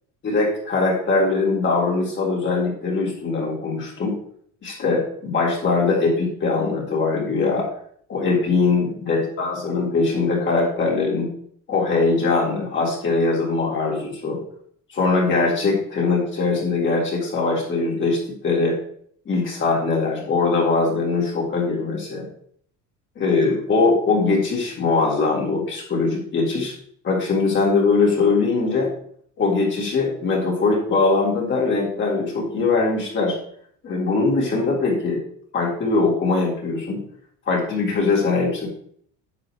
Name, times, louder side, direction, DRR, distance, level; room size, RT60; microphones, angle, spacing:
voice 1, 0.2-4.2 4.6-7.7 8.1-11.3 11.7-14.4 14.9-18.8 19.3-22.3 23.2-26.7 27.0-28.9 29.4-33.4 33.8-35.2 35.5-37.0 37.5-38.7, left 3 dB, 35° left, -3 dB, 3.4 m, -21 dB
9.9 x 7.1 x 3.2 m, 0.62 s
cardioid pair, 135°, 33 cm